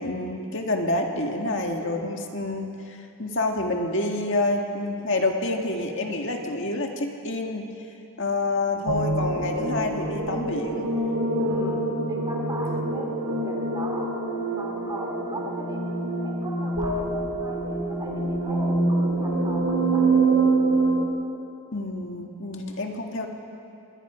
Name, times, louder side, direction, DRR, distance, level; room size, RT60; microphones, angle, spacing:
voice 1, 0.0-7.7 8.2-10.9 21.7-23.3, left 2 dB, 55° left, 2 dB, 1.8 m, -28 dB
voice 2, 1.7-2.1 11.3-14.1 14.6-20.3, right 1 dB, 20° right, 0 dB, 2.4 m, -39 dB
sound 1, 8.9-21.0, right 2 dB, 85° right, 3.2 m, -25 dB
27.0 x 21.5 x 5.1 m, 2.7 s
head